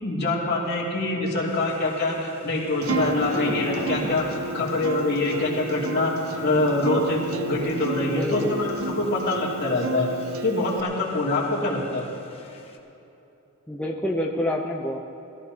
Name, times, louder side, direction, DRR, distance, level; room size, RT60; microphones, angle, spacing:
voice 1, 0.0-4.3 4.5-6.1 6.4-7.2 7.5-10.1 10.4-12.1, left 2 dB, 50° left, -5 dB, 2.8 m, -25 dB
sound 1, 1.5-12.8, left 1 dB, 25° left, 1.1 m, -39 dB
Acoustic guitar, 2.8-10.8, right 3 dB, 80° right, 0.7 m, -32 dB
voice 2, 8.0-8.6 13.7-15.0, left 1 dB, 5° left, -3 dB, 0.7 m, -27 dB
20.5 x 14.0 x 2.9 m, 2.9 s
head